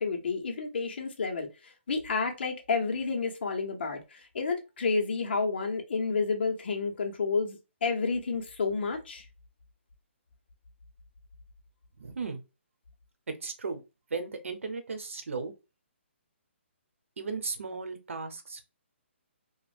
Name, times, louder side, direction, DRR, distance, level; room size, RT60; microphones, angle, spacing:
voice 1, 0.0-9.2, left 4 dB, 55° left, 0.9 m, -30 dB
voice 2, 12.0-12.4 13.3-13.8 14.1-15.5 17.2-18.6, right 4 dB, 85° right, 0.9 m, -36 dB
3.1 x 2.4 x 2.4 m
hypercardioid pair, 170°, 7 cm